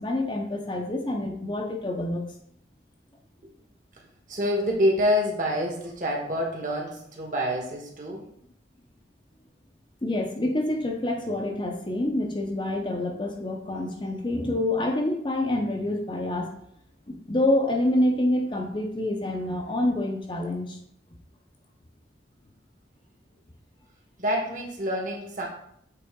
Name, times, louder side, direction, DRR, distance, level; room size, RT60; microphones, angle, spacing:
voice 1, 0.0-2.2 10.0-16.6 17.1-20.8, left 1 dB, 25° left, 2 dB, 0.6 m, -27 dB
voice 2, 4.3-8.2 24.2-25.5, equal, 45° right, 0 dB, 1.4 m, -27 dB
7.7 x 3.8 x 3.7 m, 0.71 s
head